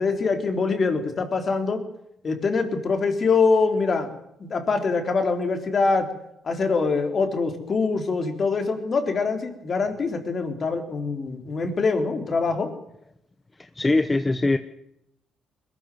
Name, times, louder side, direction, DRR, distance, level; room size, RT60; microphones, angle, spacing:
voice 1, 0.0-1.8 2.2-4.1 4.4-6.1 6.4-12.7, left 4 dB, 45° left, 7 dB, 4.0 m, -24 dB
voice 2, 13.6-14.6, left 2 dB, 20° left, 10 dB, 1.0 m, -22 dB
21.5 x 14.0 x 9.4 m, 0.78 s
cardioid pair, 90°, 0 cm